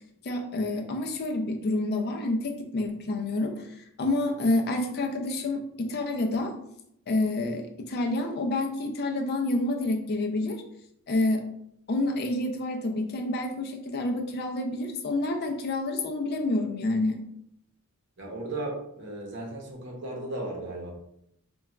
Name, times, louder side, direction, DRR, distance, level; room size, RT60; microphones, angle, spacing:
voice 1, 0.2-3.7 4.0-6.5 7.1-10.6 11.1-11.4 11.9-17.2, left 2 dB, 45° left, 3 dB, 0.4 m, -28 dB
voice 2, 18.2-20.9, right 2 dB, 55° right, -1 dB, 0.7 m, -35 dB
3.9 x 2.2 x 2.3 m, 0.76 s
head